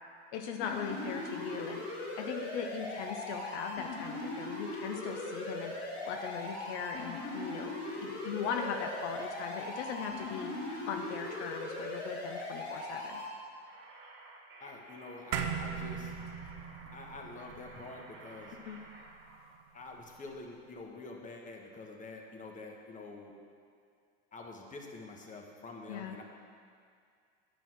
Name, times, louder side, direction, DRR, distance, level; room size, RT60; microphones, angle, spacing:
voice 1, 0.3-5.7 6.0-13.2 18.6-18.8 25.9-26.2, left 6 dB, 70° left, 4 dB, 0.8 m, -39 dB
sound 1, 0.6-13.3, left 2 dB, 40° left, 2.6 m, -39 dB
sound 2, 13.6-19.5, right 2 dB, 35° right, 2.0 m, -54 dB
voice 2, 14.6-16.1 16.9-18.6 19.7-23.3 24.3-26.2, left 3 dB, 20° left, 1 dB, 1.4 m, -47 dB
sound 3, 15.3-19.9, right 7 dB, 65° right, 0.9 m, -40 dB
9.1 x 6.4 x 6.1 m, 2.2 s
hypercardioid pair, 100°, 35 cm